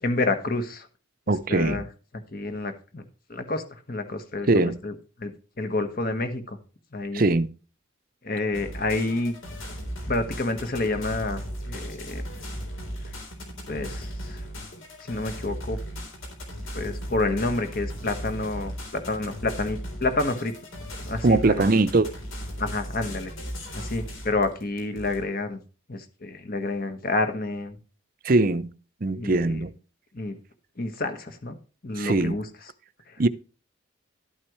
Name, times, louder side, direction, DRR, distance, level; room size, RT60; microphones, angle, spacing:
voice 1, 0.0-0.9 1.5-1.8 2.3-3.0 3.3-5.3 5.6-6.6 6.9-7.2 8.2-9.3 10.1-11.4 11.7-12.2 13.7-14.4 15.0-15.8 16.7-20.5 21.0-21.7 22.6-23.3 23.7-25.6 25.9-27.8 29.1-29.6 30.1-30.4 30.8-31.5 31.8-32.5 33.1-33.3, left 2 dB, 45° left, 1.4 m, -29 dB
voice 2, 1.3-1.8 4.5-4.8 7.1-7.5 21.2-22.1 28.2-28.7 29.0-29.7 32.0-32.4 33.2-33.3, right 2 dB, 45° right, 0.6 m, -21 dB
sound 1, 8.5-25.2, equal, 75° left, 3.7 m, -36 dB
12.0 x 8.7 x 3.1 m
head